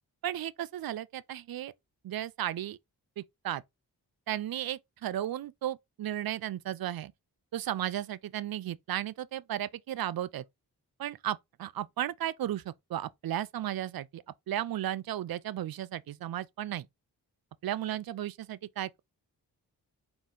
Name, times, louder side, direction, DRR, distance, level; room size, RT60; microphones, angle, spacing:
voice 1, 0.2-1.7 2.0-2.8 3.2-3.6 4.3-7.1 7.5-10.4 11.0-16.9 17.6-19.0, right 12 dB, 60° right, 0.5 m, -35 dB
3.9 x 2.5 x 3.7 m
cardioid pair, 40°, 41 cm